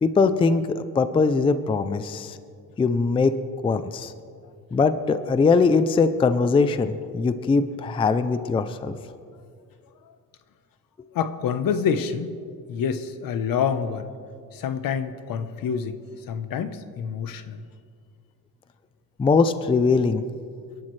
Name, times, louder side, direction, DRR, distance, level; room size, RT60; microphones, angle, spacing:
voice 1, 0.0-2.4 2.8-3.3 3.6-4.1 4.7-9.0 19.2-20.2, left 4 dB, 15° left, 11 dB, 0.3 m, -21 dB
voice 2, 11.1-12.3 12.7-14.1 14.5-16.0 16.3-17.6, left 7 dB, 70° left, 11 dB, 1.0 m, -27 dB
29.5 x 11.5 x 3.2 m, 2.3 s
cardioid pair, 160°, 36 cm